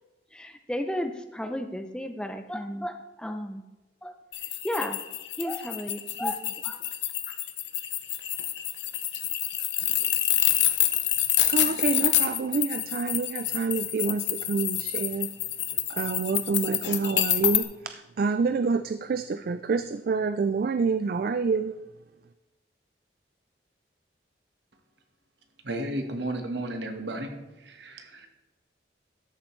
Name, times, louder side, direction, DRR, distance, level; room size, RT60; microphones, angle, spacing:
voice 1, 0.3-3.6 4.0-4.1 4.6-5.0 5.4-6.8, equal, 5° left, 7 dB, 0.5 m, -33 dB
sound 1, 4.3-17.6, left 13 dB, 85° left, 0.8 m, -27 dB
voice 2, 11.4-15.3 15.9-21.8, right 4 dB, 55° right, 11 dB, 0.3 m, -27 dB
voice 3, 25.6-27.3 27.6-28.3, right 1 dB, 75° right, 5 dB, 1.4 m, -33 dB
13.0 x 7.2 x 3.2 m, 1.1 s
head